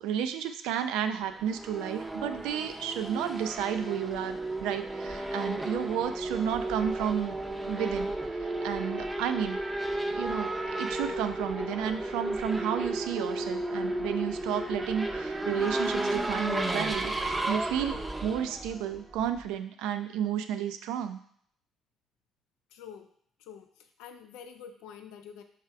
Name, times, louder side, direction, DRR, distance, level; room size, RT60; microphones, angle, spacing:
voice 1, 0.0-7.4 7.7-8.1 8.4-9.6 10.1-21.2, right 9 dB, 70° right, 9 dB, 0.3 m, -32 dB
Race car auto racing / Accelerating revving vroom, 1.3-19.4, right 1 dB, 20° right, 0.6 m, -33 dB
voice 2, 22.7-23.1 23.4-25.4, left 7 dB, 70° left, 6 dB, 0.4 m, -47 dB
3.4 x 3.2 x 4.6 m, 0.64 s
hypercardioid pair, 50°, 0 cm